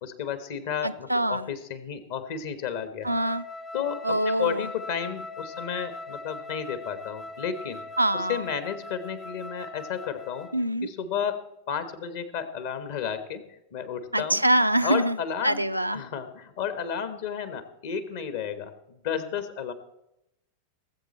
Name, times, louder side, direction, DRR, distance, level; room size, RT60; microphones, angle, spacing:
voice 1, 0.0-3.1 3.7-7.8 8.1-10.5 10.8-13.4 13.7-14.4 14.8-15.7 15.9-19.7, left 7 dB, 55° left, 11 dB, 1.3 m, -32 dB
voice 2, 0.8-1.5 3.0-3.4 4.0-4.6 8.0-8.4 10.5-10.9 14.1-15.2 15.4-16.0, right 1 dB, 90° right, 10 dB, 0.4 m, -24 dB
Wind instrument woodwind instrument, 3.0-10.7, left 2 dB, 15° left, 0.6 m, -40 dB
18.5 x 7.8 x 4.3 m, 0.86 s
figure-of-eight pair, 90°, 0 cm